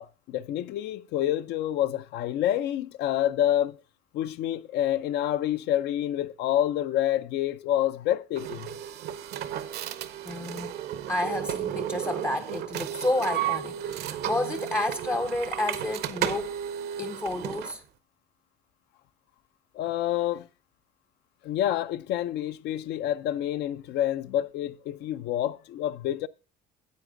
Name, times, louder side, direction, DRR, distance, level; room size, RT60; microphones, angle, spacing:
voice 1, 0.0-3.8 4.1-8.7 19.7-20.5 21.4-26.3, left 12 dB, 80° left, 0.6 m, -28 dB
sound 1, 8.4-17.8, right 10 dB, 75° right, 0.7 m, -33 dB
voice 2, 10.2-10.8 11.1-16.5 17.0-17.8, left 2 dB, 15° left, 0.4 m, -30 dB
9.6 x 8.2 x 3.8 m
cardioid pair, 110°, 17 cm